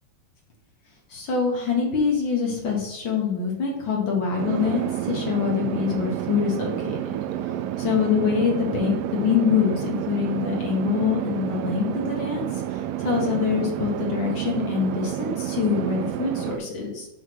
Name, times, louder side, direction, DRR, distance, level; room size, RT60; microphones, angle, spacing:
voice 1, 1.1-7.0 7.8-17.1, left 6 dB, 55° left, -1 dB, 1.4 m, -25 dB
sound 1, 4.4-16.6, right 12 dB, 85° right, 2.2 m, -29 dB
6.4 x 3.9 x 6.0 m, 0.88 s
omnidirectional pair, 3.9 m